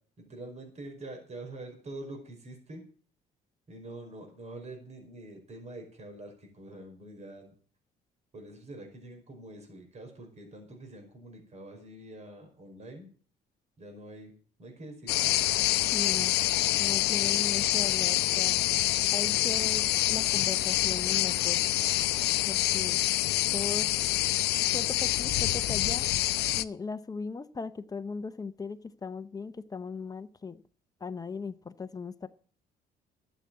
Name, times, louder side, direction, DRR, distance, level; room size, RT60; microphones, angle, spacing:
voice 1, 0.2-2.8 3.7-7.5 8.3-13.1 13.8-14.3 14.6-15.3, right 2 dB, 40° right, 3 dB, 5.2 m, -45 dB
sound 1, 15.1-26.6, left 16 dB, 80° left, 0.6 m, -26 dB
voice 2, 15.9-16.3 16.8-18.5 19.1-21.6 22.5-23.0 23.5-23.9 24.7-26.1 26.5-30.6 31.0-32.3, left 4 dB, 20° left, 12 dB, 0.8 m, -38 dB
12.5 x 8.4 x 7.7 m, 0.43 s
cardioid pair, 110°, 17 cm